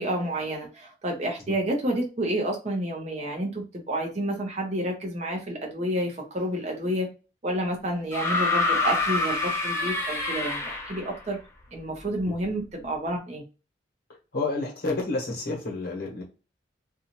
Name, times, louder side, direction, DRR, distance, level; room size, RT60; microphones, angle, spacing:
voice 1, 0.0-7.1 7.4-11.4 11.7-13.4, right 1 dB, 35° right, 0.7 m, -29 dB
sound 1, 8.1-11.2 12.4-12.5, left 2 dB, 15° left, 0.4 m, -26 dB
voice 2, 14.3-16.2, left 3 dB, 55° left, 1.0 m, -30 dB
2.5 x 2.3 x 3.0 m
head